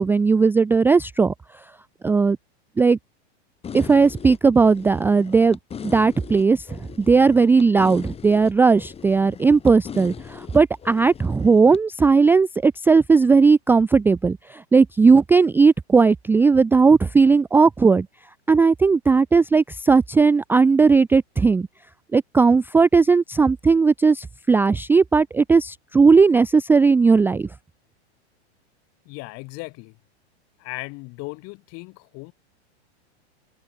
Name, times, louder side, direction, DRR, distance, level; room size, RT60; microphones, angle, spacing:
voice 1, 0.0-1.3 2.0-2.4 2.8-3.0 3.7-18.1 18.5-21.7 22.1-27.5, right 4 dB, 5° right, 0.4 m, -17 dB
sound 1, 3.6-11.8, left 7 dB, 20° left, 1.8 m, -39 dB
voice 2, 29.0-30.0 30.6-32.3, left 27 dB, 45° left, 3.5 m, -37 dB
hypercardioid pair, 130°, 33 cm